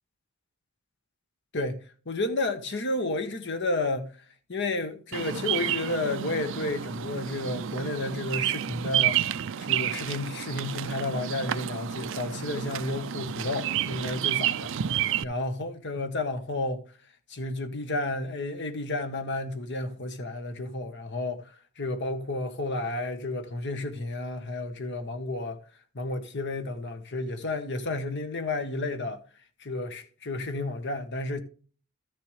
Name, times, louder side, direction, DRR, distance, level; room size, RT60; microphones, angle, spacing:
voice 1, 1.5-4.2 4.5-14.7 15.2-16.8 17.3-21.4 21.8-25.6 25.9-29.2 29.6-31.4, left 2 dB, 55° left, 1.2 m, -31 dB
Bird vocalization bird call bird song, 5.1-15.2, right 10 dB, 65° right, 0.5 m, -30 dB
13.5 x 6.8 x 3.3 m
head